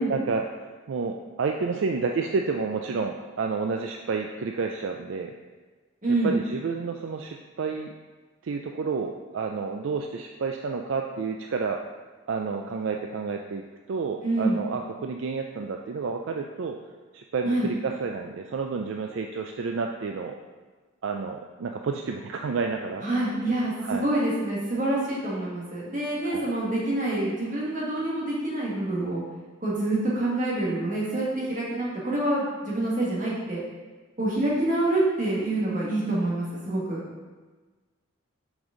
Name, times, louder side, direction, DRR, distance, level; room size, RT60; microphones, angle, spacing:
voice 1, 0.0-5.3 6.2-7.9 8.4-11.8 12.3-16.8 17.1-20.4 21.0-23.0 23.8-24.1 26.2-26.5, right 4 dB, 70° right, 3 dB, 0.4 m, -30 dB
voice 2, 6.0-6.4 14.2-14.6 17.5-17.7 23.0-29.2 29.6-33.6 34.2-37.0, right 2 dB, 40° right, -6 dB, 1.8 m, -26 dB
6.1 x 5.2 x 3.9 m, 1.3 s
head